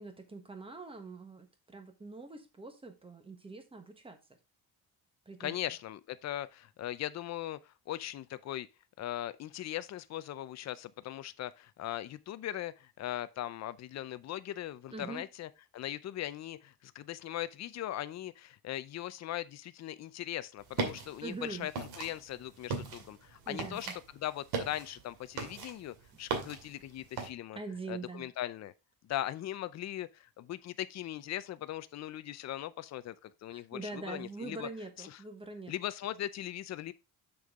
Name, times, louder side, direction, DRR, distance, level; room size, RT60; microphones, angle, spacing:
voice 1, 0.0-4.2 5.3-5.6 14.9-15.2 21.2-21.7 23.5-23.9 27.5-28.3 33.5-35.7, right 3 dB, 15° right, 1.2 m, -43 dB
voice 2, 5.4-8.7 9.0-23.9 24.1-27.6 27.9-28.7 29.0-34.7 35.0-35.2 35.7-36.9, left 13 dB, 45° left, 0.5 m, -39 dB
sound 1, 20.6-27.3, right 4 dB, 75° right, 2.4 m, -39 dB
7.0 x 6.6 x 3.6 m
cardioid pair, 170°, 38 cm